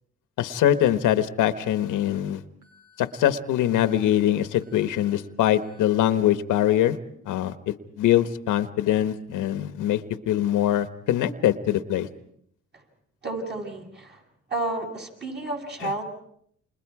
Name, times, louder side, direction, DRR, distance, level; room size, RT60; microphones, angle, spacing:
voice 1, 0.4-2.4 3.0-7.0 7.3-10.0 10.3-12.1 15.8-15.9, left 12 dB, 85° left, 11 dB, 1.2 m, -23 dB
Alarm, 1.6-2.1 2.6-3.1 3.6-4.1 4.6-5.1 5.6-6.1, left 5 dB, 85° right, 5.9 m, -58 dB
voice 2, 13.2-14.2 14.5-16.0, right 2 dB, 35° right, 1 dB, 7.9 m, -31 dB
30.0 x 27.5 x 4.8 m, 0.68 s
cardioid pair, 90°, 30 cm